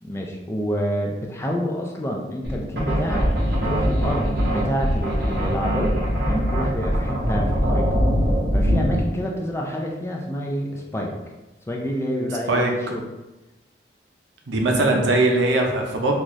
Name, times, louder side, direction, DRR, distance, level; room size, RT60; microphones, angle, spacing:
voice 1, 0.0-3.3 3.6-6.0 6.3-7.9 8.5-11.1 11.7-13.0 14.8-15.0, equal, 15° left, 0 dB, 0.4 m, -28 dB
sound 1, 2.4-9.1, equal, 55° right, 1.1 m, -22 dB
voice 2, 14.5-16.1, right 2 dB, 90° right, 1 dB, 0.6 m, -20 dB
3.9 x 2.4 x 3.1 m, 1.1 s
head